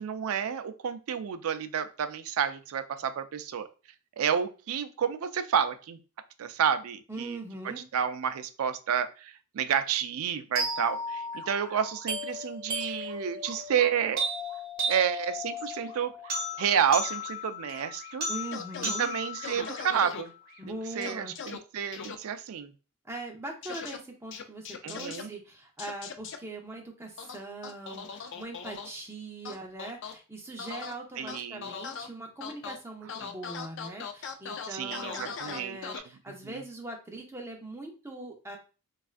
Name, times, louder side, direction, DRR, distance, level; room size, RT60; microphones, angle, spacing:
voice 1, 0.0-3.7 4.2-6.0 6.4-7.4 7.9-14.3 14.9-18.3 18.8-20.3 20.7-22.7 24.8-25.3 31.2-31.7 34.7-35.8 36.4-36.6, right 8 dB, 75° right, 11 dB, 0.4 m, -30 dB
voice 2, 7.1-7.8 18.3-19.1 20.6-21.3 23.0-38.6, right 2 dB, 10° right, 1 dB, 0.6 m, -41 dB
sound 1, 10.5-20.6, equal, 45° right, 0.9 m, -35 dB
sound 2, 18.5-19.0 19.4-20.2 21.0-21.6 21.9-22.2 23.6-24.0 24.3-25.2 25.8-26.4 27.2-28.9 29.5-30.1 30.6-30.9 31.3-32.1 32.4-32.8 33.1-36.0, left 6 dB, 55° left, 0.4 m, -39 dB
3.3 x 2.4 x 2.4 m, 0.33 s
head